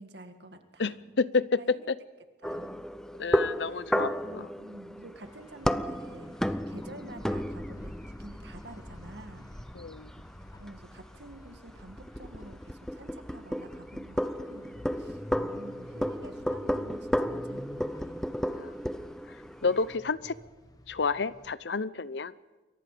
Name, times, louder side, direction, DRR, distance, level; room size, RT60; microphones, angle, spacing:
voice 1, 0.0-1.1 1.6-1.9 2.4-2.8 3.6-3.8 4.2-9.6 10.6-15.3 15.5-18.2 19.6-19.8, right 1 dB, 75° right, 7 dB, 2.1 m, -49 dB
voice 2, 0.8-1.9 3.2-4.5 9.7-10.1 15.4-15.5 18.4-18.7 19.6-20.3 20.9-22.3, left 4 dB, 85° left, 17 dB, 0.7 m, -30 dB
sound 1, 2.4-20.0, equal, 5° left, 0.6 m, -34 dB
sound 2, 5.2-21.6, left 1 dB, 20° left, 1.3 m, -51 dB
28.5 x 23.0 x 5.1 m, 1.2 s
head